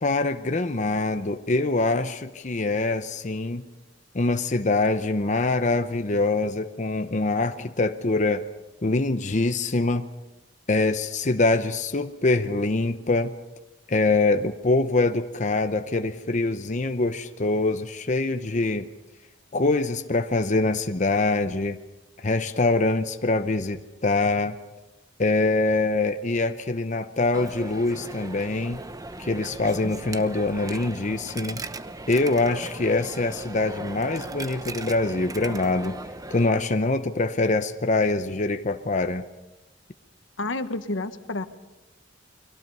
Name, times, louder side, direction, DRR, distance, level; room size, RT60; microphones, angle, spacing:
voice 1, 0.0-3.6 4.1-8.5 8.8-10.0 10.7-13.3 13.9-18.9 19.5-21.8 22.2-24.6 25.2-28.8 29.2-31.6 32.1-36.0 36.3-39.2, left 2 dB, 40° left, 8 dB, 0.8 m, -24 dB
Coin (dropping), 27.3-36.5, right 2 dB, 20° right, 0.8 m, -38 dB
voice 2, 40.4-41.4, left 2 dB, 80° left, 10 dB, 1.3 m, -29 dB
29.5 x 23.0 x 5.5 m, 1.0 s
head